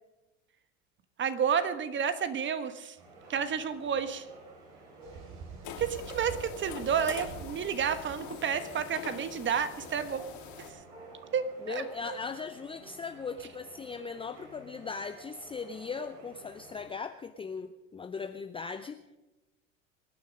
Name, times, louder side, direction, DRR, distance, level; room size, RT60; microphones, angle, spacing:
voice 1, 1.2-3.0 3.3-4.3 5.8-10.3 10.6-10.8 11.3-12.2, right 7 dB, 30° right, 12 dB, 1.3 m, -31 dB
sound 1, 3.0-16.9, right 2 dB, 65° right, 7.0 m, -52 dB
sound 2, 5.0-10.2, right 5 dB, 45° right, 2.8 m, -48 dB
sound 3, 5.6-10.7, left 8 dB, 50° left, 3.4 m, -44 dB
voice 2, 11.6-19.0, left 5 dB, 15° left, 9 dB, 0.6 m, -39 dB
24.5 x 9.6 x 5.1 m, 1.0 s
hypercardioid pair, 80°, 38 cm